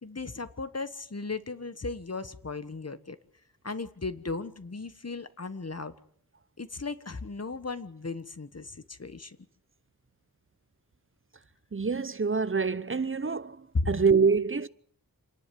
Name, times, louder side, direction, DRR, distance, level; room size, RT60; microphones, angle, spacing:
voice 1, 0.0-3.2 3.6-5.9 6.6-9.4 13.7-13.9, left 3 dB, 40° left, 1.3 m, -36 dB
voice 2, 11.7-13.6 13.9-14.7, right 5 dB, 35° right, 0.8 m, -25 dB
27.5 x 11.0 x 9.8 m
wide cardioid pair, 60°, 37 cm